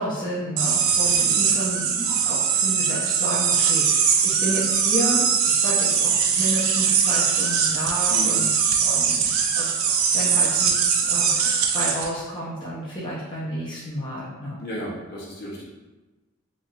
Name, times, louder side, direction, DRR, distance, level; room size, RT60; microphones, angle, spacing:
voice 1, 0.0-8.5 8.8-9.2 9.6-9.7 10.1-14.6, equal, 20° left, -9 dB, 0.5 m, -31 dB
sound 1, 0.6-12.1, right 7 dB, 75° right, 0.3 m, -21 dB
voice 2, 14.6-15.6, equal, 50° left, -5 dB, 0.8 m, -34 dB
3.1 x 2.7 x 2.3 m, 1.1 s
head